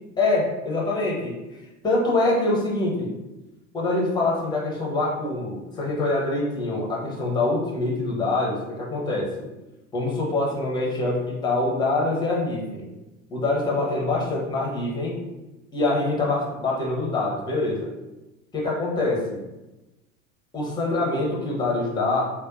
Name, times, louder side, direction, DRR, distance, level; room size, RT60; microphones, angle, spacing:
voice 1, 0.2-1.4 1.8-3.1 3.7-9.5 9.9-12.9 13.3-15.2 15.7-17.9 18.5-19.4 20.5-22.3, left 2 dB, 10° left, -3 dB, 0.7 m, -25 dB
4.2 x 2.2 x 2.4 m, 1.0 s
figure-of-eight pair, 80°, 41 cm